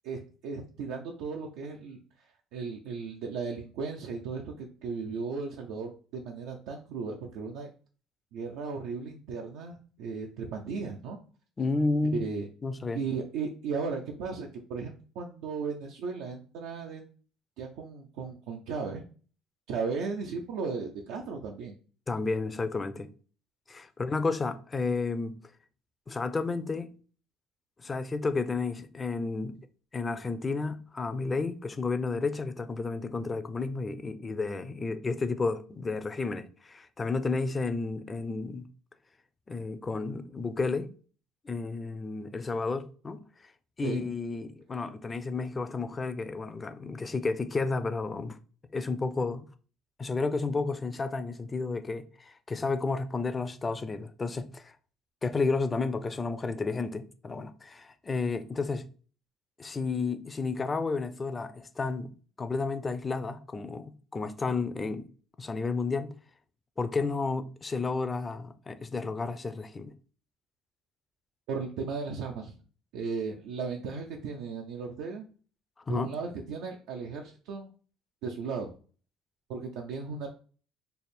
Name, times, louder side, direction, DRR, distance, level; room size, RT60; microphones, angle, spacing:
voice 1, 0.0-7.7 8.3-11.2 12.1-12.5 12.9-17.1 17.6-19.0 19.7-21.7 43.8-44.0 71.5-72.5 72.9-75.3 75.9-77.7 78.2-78.7 79.5-80.3, right 5 dB, 80° right, 0.5 m, -36 dB
voice 2, 11.6-12.2 12.6-13.0 22.1-23.1 23.7-25.4 26.1-26.9 27.8-29.6 29.9-38.7 39.5-40.9 41.4-43.2 43.8-48.4 48.7-49.5 50.0-54.7 55.2-58.9 59.6-62.1 62.4-65.1 65.4-66.2 66.8-69.9 75.9-76.1, left 3 dB, 25° left, 0.4 m, -32 dB
3.3 x 2.1 x 4.2 m
cardioid pair, 100°, 0 cm